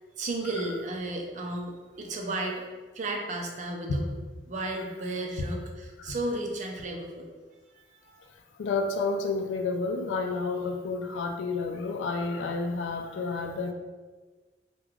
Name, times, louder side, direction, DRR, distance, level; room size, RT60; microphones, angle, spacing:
voice 1, 0.2-2.6 2.9-4.1 4.5-7.3 7.9-8.2, right 2 dB, 40° right, 1 dB, 0.4 m, -33 dB
voice 2, 8.6-13.7, left 3 dB, 85° left, 5 dB, 0.3 m, -30 dB
3.1 x 2.2 x 2.3 m, 1.3 s
head